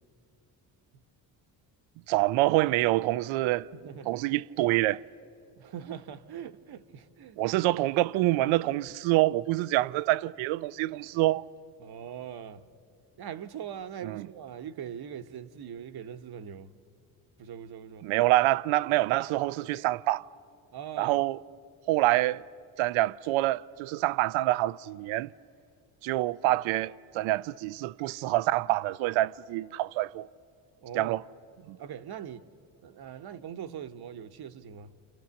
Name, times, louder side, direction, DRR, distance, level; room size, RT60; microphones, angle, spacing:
voice 1, 2.1-3.7 4.1-5.0 7.4-11.4 14.0-14.3 18.0-20.3 21.0-21.4 21.9-22.4 22.8-25.3 26.0-30.3 31.0-31.2 31.7-31.8, right 17 dB, 85° right, 0.6 m, -26 dB
voice 2, 3.7-4.3 5.6-7.4 11.8-12.6 13.2-16.7 17.4-18.1 20.7-21.2 30.8-31.2 31.8-32.5 32.8-35.0, right 9 dB, 55° right, 1.1 m, -41 dB
29.5 x 27.5 x 7.0 m
supercardioid pair, 80°, 47 cm